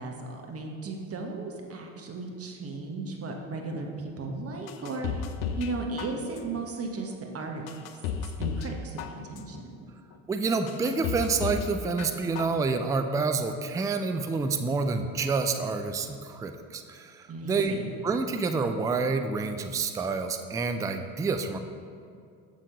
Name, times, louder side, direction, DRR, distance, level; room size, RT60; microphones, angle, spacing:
voice 1, 0.0-5.1 5.6-7.7 8.4-9.9 17.3-17.9, right 3 dB, 35° right, 2 dB, 1.2 m, -36 dB
sound 1, 4.7-5.7 6.0-6.6 7.1-7.2 7.7-8.7 9.0-9.6 10.1-10.2 10.7-11.7 12.0-12.6 12.9-13.0, left 7 dB, 75° left, 0.7 m, -33 dB
voice 2, 10.3-17.8 18.0-21.6, right 4 dB, 10° right, 7 dB, 0.3 m, -28 dB
7.3 x 6.6 x 3.9 m, 2.4 s
hypercardioid pair, 70°, 43 cm